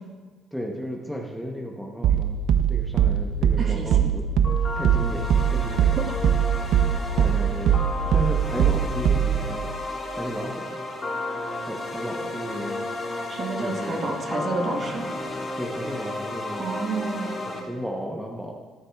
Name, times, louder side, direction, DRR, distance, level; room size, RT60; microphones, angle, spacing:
voice 1, 0.5-4.3 4.7-6.0 7.2-9.7 10.1-10.8 11.6-12.9 13.6-14.1 15.6-16.7 17.5-18.5, equal, ahead, 0 dB, 0.7 m, -34 dB
sound 1, 2.0-9.5, right 9 dB, 70° right, 0.4 m, -22 dB
voice 2, 3.6-4.1 13.3-15.1 16.6-17.4, right 3 dB, 40° right, 1 dB, 1.4 m, -30 dB
sound 2, 4.4-17.6, left 2 dB, 25° left, 2.1 m, -33 dB
13.0 x 9.8 x 2.3 m, 1.3 s
cardioid pair, 130°, 0 cm